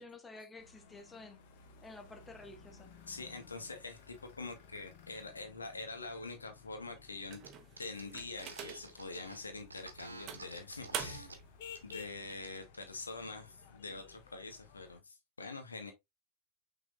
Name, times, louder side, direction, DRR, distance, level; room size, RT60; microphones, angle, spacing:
voice 1, 0.0-1.4 1.8-2.9, left 3 dB, 15° left, 1.0 m, -51 dB
sound 1, 0.6-15.0, left 7 dB, 50° left, 1.0 m, -57 dB
voice 2, 3.1-7.4 7.8-11.4 11.8-15.9, left 3 dB, 75° left, 0.8 m, -45 dB
sound 2, 7.3-9.0 9.6-9.7 10.3-11.5, right 8 dB, 35° right, 0.8 m, -44 dB
sound 3, 7.4-7.5 7.8-11.3 11.7-11.9 12.3-12.8, right 2 dB, 75° right, 1.0 m, -50 dB
5.9 x 3.8 x 2.3 m
figure-of-eight pair, 90°, 0 cm